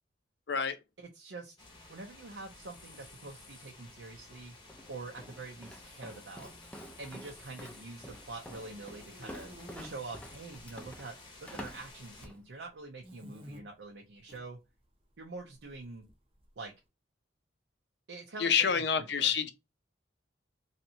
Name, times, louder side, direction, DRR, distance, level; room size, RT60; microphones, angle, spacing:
voice 1, 1.0-1.5 1.9-4.5 4.9-6.5 7.0-9.5 9.8-11.1 11.4-14.6 15.2-16.0 16.6-16.7 18.1-19.3, right 3 dB, 75° right, 0.6 m, -45 dB
sound 1, 1.6-12.3, left 2 dB, 25° left, 0.8 m, -53 dB
Walk footsteps, 4.7-12.4, equal, 5° left, 0.4 m, -49 dB
sound 2, 8.7-9.9 10.5-11.1 11.4-12.4 13.0-13.6 14.2-14.4 15.5-16.5, equal, 30° right, 0.6 m, -51 dB
voice 2, 18.4-19.5, left 7 dB, 60° left, 0.5 m, -27 dB
3.2 x 2.7 x 2.7 m
head